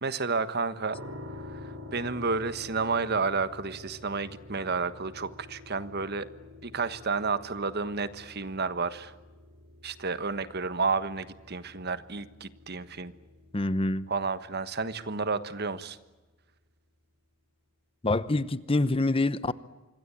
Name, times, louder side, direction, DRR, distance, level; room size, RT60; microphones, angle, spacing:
voice 1, 0.0-1.0 1.5-6.3 6.6-9.1 9.8-13.1 14.1-16.0, right 4 dB, 55° right, 1.3 m, -31 dB
sound 1, 0.9-15.8, left 2 dB, 85° right, 6.9 m, -48 dB
voice 2, 13.5-14.1 18.0-19.5, left 2 dB, 30° left, 0.9 m, -26 dB
26.0 x 21.5 x 8.9 m
head